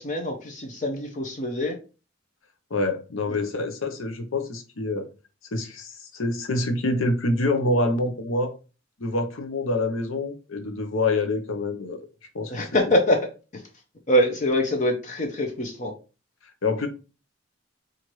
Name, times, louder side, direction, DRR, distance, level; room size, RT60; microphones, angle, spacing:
voice 1, 0.0-1.8 3.3-3.4 12.5-13.3 13.5-13.6 14.1-15.9, equal, 35° left, 0.5 m, -24 dB
voice 2, 2.7-5.1 5.5-8.5 9.0-12.0 12.3-12.7 16.6-16.9, left 2 dB, 75° left, 0.7 m, -26 dB
4.4 x 2.5 x 3.0 m
head